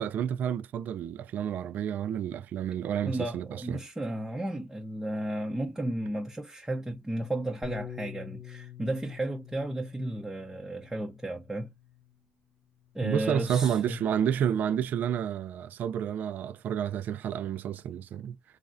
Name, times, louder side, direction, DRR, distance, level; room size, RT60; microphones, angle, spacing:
voice 1, 0.0-3.8 13.0-18.4, right 9 dB, 55° right, 0.3 m, -30 dB
voice 2, 3.0-11.7 12.9-14.0, right 1 dB, 10° right, 0.5 m, -33 dB
Bass guitar, 7.6-12.1 12.9-13.9, left 7 dB, 20° left, 0.9 m, -46 dB
3.1 x 2.4 x 2.5 m
supercardioid pair, 90°, 3 cm